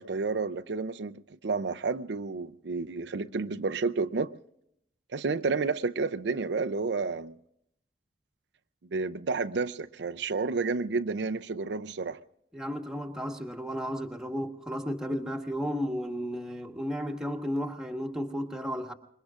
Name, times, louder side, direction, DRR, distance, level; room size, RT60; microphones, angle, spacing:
voice 1, 0.0-4.3 5.1-7.3 8.9-12.2, right 4 dB, 75° right, 0.5 m, -30 dB
voice 2, 12.5-18.9, equal, 5° right, 1.4 m, -33 dB
26.0 x 22.0 x 2.5 m
head